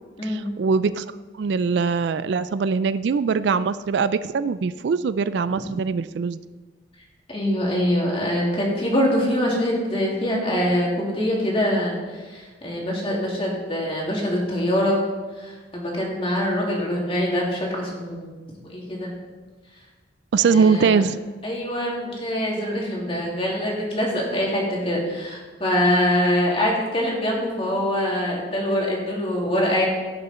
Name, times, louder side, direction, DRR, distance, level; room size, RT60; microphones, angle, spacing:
voice 1, 0.2-1.0 1.4-6.4 20.3-21.2, right 5 dB, 60° right, 14 dB, 0.3 m, -22 dB
voice 2, 7.3-15.0 15.3-18.3 18.6-19.1 19.7-19.8 20.4-21.0 21.4-29.9, equal, 30° left, -3 dB, 2.7 m, -24 dB
16.5 x 6.7 x 4.3 m, 1.4 s
head